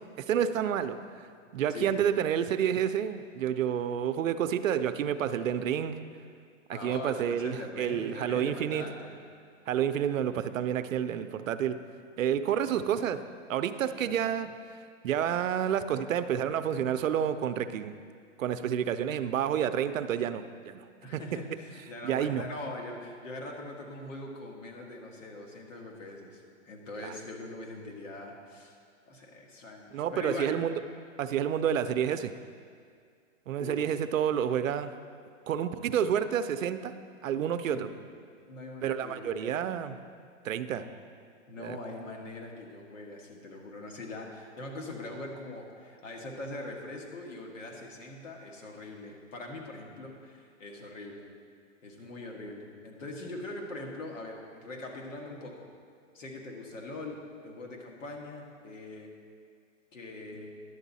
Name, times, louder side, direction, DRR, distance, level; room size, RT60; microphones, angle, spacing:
voice 1, 0.2-1.0 1.5-6.0 6.7-8.9 9.7-11.8 12.2-13.2 13.5-14.5 15.0-18.0 18.4-20.9 21.1-21.2 22.0-22.4 27.0-27.1 29.9-30.7 31.2-32.3 33.5-34.9 35.5-36.9 37.2-37.9 38.8-39.9 40.4-40.8 41.6-41.8, right 9 dB, 85° right, 11 dB, 0.6 m, -29 dB
voice 2, 6.7-9.2 14.0-14.2 21.0-28.8 29.1-30.6 33.6-33.8 37.7-37.9 38.5-39.7 40.6-41.0 41.5-51.2 51.8-55.7 56.1-59.1 59.9-60.5, left 2 dB, 75° left, 1 dB, 1.8 m, -42 dB
11.0 x 7.3 x 4.1 m, 2.1 s
hypercardioid pair, 170°, 39 cm